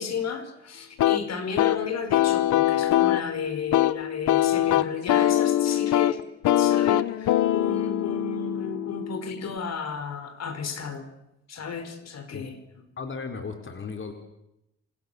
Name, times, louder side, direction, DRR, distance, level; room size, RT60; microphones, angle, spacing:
voice 1, 0.0-6.2 6.5-11.1 11.5-12.6, left 5 dB, 60° left, 9 dB, 4.6 m, -33 dB
sound 1, 1.0-9.6, left 13 dB, 80° left, 1.0 m, -23 dB
voice 2, 13.0-14.1, left 4 dB, 40° left, 5 dB, 4.0 m, -35 dB
29.0 x 26.0 x 6.9 m, 0.85 s
cardioid pair, 90°, 30 cm